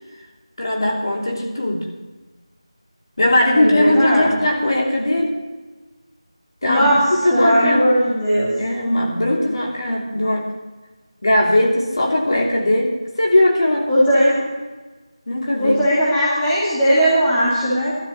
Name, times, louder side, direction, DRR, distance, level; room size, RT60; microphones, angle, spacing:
voice 1, 0.6-1.9 3.2-5.4 6.6-6.9 7.2-7.9 8.6-10.5 11.2-14.2 15.3-15.8, left 1 dB, 50° left, -1 dB, 3.0 m, -19 dB
voice 2, 3.5-4.4 6.7-7.0 7.3-8.5 13.9-14.4 15.6-17.9, equal, 5° left, -11 dB, 2.1 m, -17 dB
23.5 x 12.5 x 3.1 m, 1.2 s
figure-of-eight pair, 175°, 3 cm